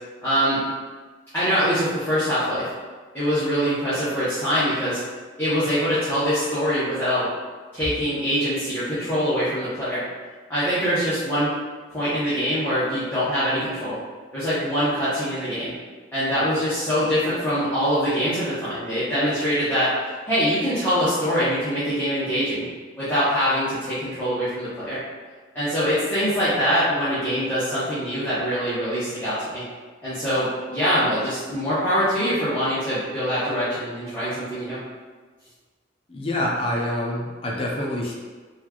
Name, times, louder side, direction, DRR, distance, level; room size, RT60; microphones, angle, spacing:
voice 1, 0.2-0.6 1.3-2.7 3.1-5.0 5.4-7.3 7.7-10.0 10.5-11.5 11.9-13.9 14.3-15.7 16.1-19.9 20.3-22.7 23.0-25.0 25.5-29.6 30.0-34.8, equal, 10° left, -15 dB, 1.0 m, -23 dB
voice 2, 36.1-38.1, left 1 dB, 30° left, -2 dB, 0.5 m, -26 dB
4.3 x 2.4 x 3.0 m, 1.4 s
head